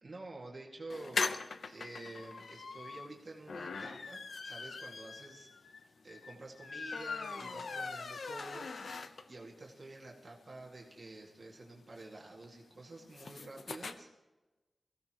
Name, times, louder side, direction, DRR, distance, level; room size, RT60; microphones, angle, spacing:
voice 1, 0.0-1.2 1.6-8.7 9.1-14.1, right 2 dB, 45° right, -1 dB, 2.1 m, -49 dB
sound 1, 0.9-9.5 9.9-10.0 10.2-10.3 10.5-13.9, left 4 dB, 80° left, 0.8 m, -41 dB
22.5 x 16.0 x 3.0 m, 1.1 s
wide cardioid pair, 125°, 0 cm